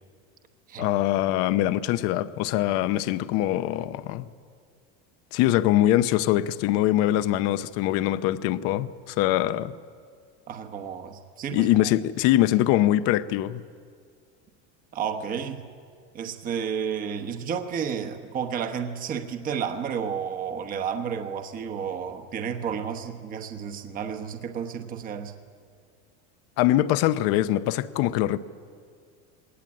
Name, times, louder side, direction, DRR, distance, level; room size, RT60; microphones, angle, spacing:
voice 1, 0.8-4.3 5.3-9.7 11.5-13.6 26.6-28.4, left 14 dB, 45° left, 0.7 m, -23 dB
voice 2, 10.5-11.9 14.9-15.6 16.1-25.3, right 7 dB, 25° right, 1.1 m, -31 dB
21.0 x 18.5 x 8.7 m
cardioid pair, 165°, 32 cm